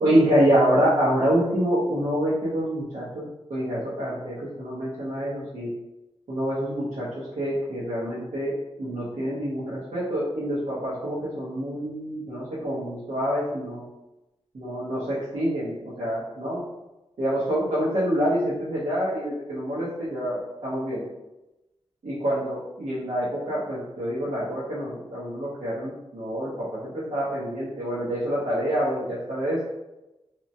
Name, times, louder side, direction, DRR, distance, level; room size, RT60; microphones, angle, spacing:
voice 1, 0.0-5.7 6.3-7.1 7.4-8.5 8.8-13.8 14.5-16.6 17.2-21.0 22.0-29.6, equal, 75° right, -9 dB, 0.8 m, -26 dB
3.0 x 2.1 x 2.6 m, 0.99 s
wide cardioid pair, 95°, 11 cm